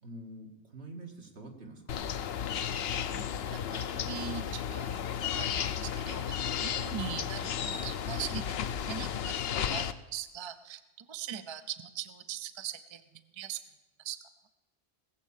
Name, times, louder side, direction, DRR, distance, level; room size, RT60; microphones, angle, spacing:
voice 1, 0.0-2.0 6.8-7.0, right 1 dB, 75° right, 2 dB, 2.1 m, -46 dB
sound 1, 1.9-9.9, left 8 dB, 70° left, 0.9 m, -33 dB
voice 2, 3.1-5.0 5.2-8.4 8.8-9.4 9.7-10.8 11.1-13.0 13.3-13.6 14.0-14.2, right 9 dB, 35° right, 10 dB, 0.5 m, -41 dB
18.5 x 7.5 x 7.3 m, 1.1 s
omnidirectional pair, 1.1 m